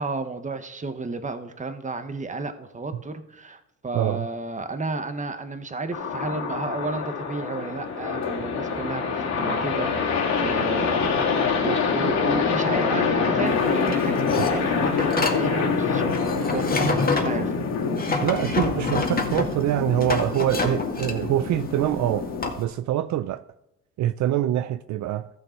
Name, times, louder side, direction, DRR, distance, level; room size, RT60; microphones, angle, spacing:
voice 1, 0.0-11.4 11.6-16.9 17.2-17.5, right 3 dB, 25° right, 1.2 m, -32 dB
voice 2, 3.9-4.3 14.4-14.5 18.2-22.3 22.6-23.4 24.0-25.3, right 12 dB, 70° right, 0.5 m, -24 dB
sound 1, 5.9-22.5, left 5 dB, 65° left, 2.4 m, -25 dB
sound 2, 13.5-22.6, left 3 dB, 30° left, 1.9 m, -28 dB
14.0 x 6.5 x 4.5 m
cardioid pair, 90°, 30 cm